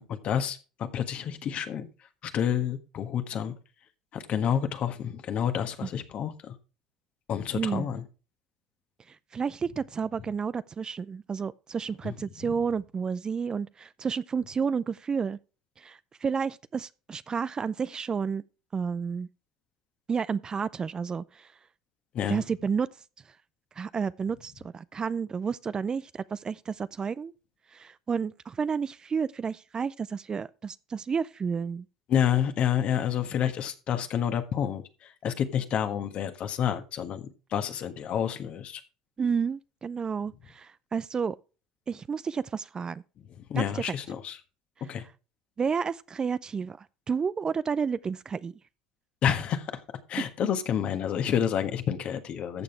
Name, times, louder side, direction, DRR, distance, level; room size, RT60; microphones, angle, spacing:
voice 1, 0.0-1.9 2.2-3.5 4.1-6.5 7.3-8.0 12.0-12.1 12.4-12.6 22.1-22.4 32.1-37.2 37.5-38.8 43.3-44.4 44.9-45.0 49.2-49.8 50.1-52.6, left 9 dB, 50° left, 1.5 m, -29 dB
voice 2, 7.5-7.9 9.1-15.4 15.8-18.4 18.7-19.3 20.1-21.5 22.3-22.9 23.8-27.3 27.7-31.9 39.2-41.4 41.9-43.0 43.5-43.9 45.6-48.5, right 6 dB, 30° right, 0.4 m, -31 dB
14.0 x 6.9 x 3.3 m
hypercardioid pair, 70°, 3 cm